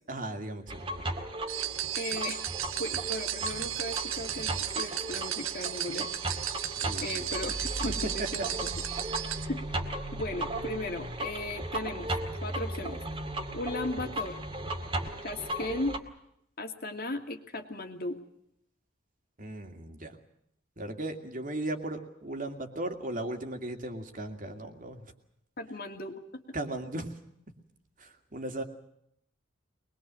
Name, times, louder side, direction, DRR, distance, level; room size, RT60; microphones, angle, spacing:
voice 1, 0.1-1.0 6.8-7.4 7.8-8.3 19.4-20.2 20.8-25.1 26.5-27.2 28.0-28.6, right 1 dB, 40° right, 5 dB, 2.5 m, -37 dB
sound 1, 0.7-16.0, right 1 dB, 25° right, 2.2 m, -36 dB
sound 2, 1.5-9.5, right 11 dB, 80° right, 1.5 m, -35 dB
voice 2, 2.0-2.4 2.8-6.1 7.0-8.5 9.5-9.6 10.1-13.0 13.5-14.4 15.2-16.0 16.6-18.2 25.6-26.4, left 2 dB, 45° left, 5 dB, 2.4 m, -36 dB
23.5 x 21.0 x 7.6 m, 0.75 s
head